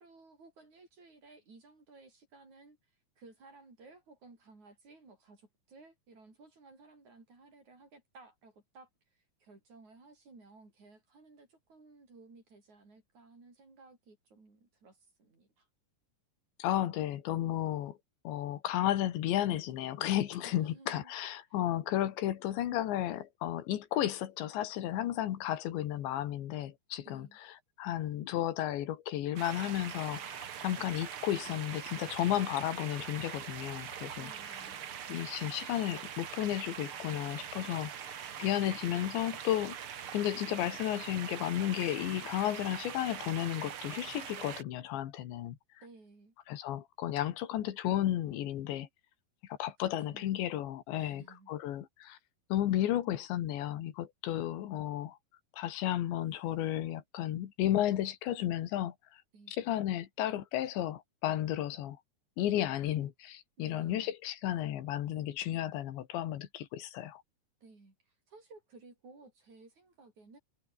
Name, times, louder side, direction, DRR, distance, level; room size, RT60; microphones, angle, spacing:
voice 1, 0.0-2.8 3.2-15.7 20.4-21.1 27.0-27.4 34.1-34.8 45.8-46.3 50.1-50.4 50.9-51.5 54.3-54.6 59.3-59.6 63.6-64.1 67.6-70.4, right 3 dB, 40° right, 8.3 m, -57 dB
voice 2, 16.6-18.0 18.3-34.3 35.1-39.8 40.1-45.6 46.5-48.9 49.5-52.2 52.5-55.2 55.5-58.9 59.5-62.0 62.4-67.2, left 12 dB, 85° left, 4.1 m, -33 dB
sound 1, 29.4-44.6, right 9 dB, 70° right, 1.2 m, -43 dB
omnidirectional pair, 5.0 m